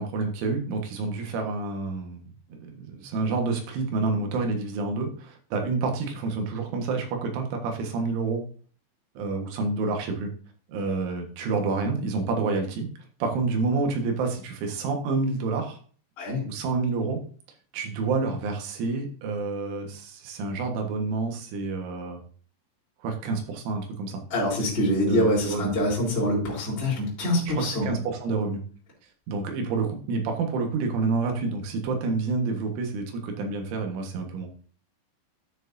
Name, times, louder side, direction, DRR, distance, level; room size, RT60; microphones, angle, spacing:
voice 1, 0.0-2.2 2.5-8.4 9.2-10.3 10.7-12.9 13.2-15.8 16.5-17.2 17.7-22.2 23.0-24.2 25.1-25.8 27.5-28.6 29.3-34.5, right 4 dB, 80° right, 3 dB, 3.9 m, -28 dB
voice 2, 24.3-27.9, left 1 dB, 15° left, -6 dB, 3.2 m, -25 dB
12.0 x 6.6 x 2.7 m, 0.43 s
omnidirectional pair, 5.5 m